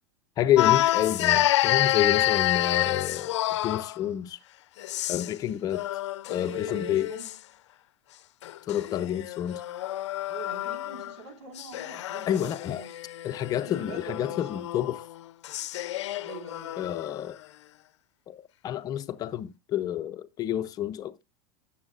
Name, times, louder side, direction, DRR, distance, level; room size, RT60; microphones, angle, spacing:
voice 1, 0.4-4.4 5.1-5.8 6.3-7.1 8.7-9.6 12.3-12.8 13.2-15.0 16.8-17.4 18.3-21.2, left 11 dB, 25° left, 0.5 m, -29 dB
sound 1, 0.6-4.0 4.8-5.4 5.7-7.4 8.4-11.2 11.6-17.2, left 14 dB, 85° left, 0.5 m, -28 dB
voice 2, 6.3-7.3 10.3-12.9 13.5-14.7 16.2-16.9, right 3 dB, 80° right, 4.4 m, -44 dB
17.0 x 7.2 x 2.4 m
supercardioid pair, 150°, 14 cm